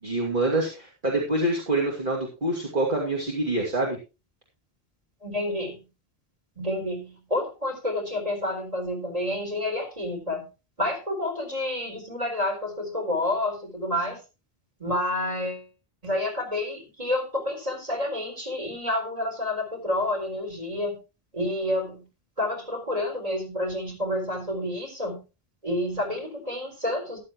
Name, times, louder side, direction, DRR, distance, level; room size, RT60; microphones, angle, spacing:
voice 1, 0.0-4.0, right 2 dB, 50° right, -2 dB, 2.7 m, -26 dB
voice 2, 5.2-5.8 6.6-10.5 10.8-14.2 14.8-15.7 16.0-21.0 21.3-22.1 22.4-25.2 25.6-27.2, left 1 dB, 35° right, 3 dB, 4.3 m, -29 dB
14.0 x 11.5 x 3.0 m, 0.29 s
omnidirectional pair, 1.1 m